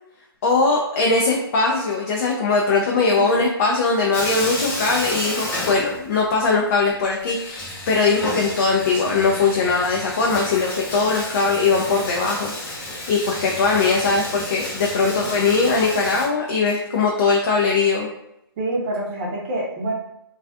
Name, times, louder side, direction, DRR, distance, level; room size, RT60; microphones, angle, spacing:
voice 1, 0.4-18.1, left 4 dB, 40° left, -1 dB, 0.4 m, -20 dB
Bathtub (filling or washing), 4.1-6.4 6.7-6.8 7.2-16.3, left 1 dB, 15° left, 0.7 m, -31 dB
voice 2, 15.1-15.5 18.6-19.9, right 1 dB, 30° right, -2 dB, 0.6 m, -27 dB
2.3 x 2.3 x 2.4 m, 0.83 s
hypercardioid pair, 145°, 13 cm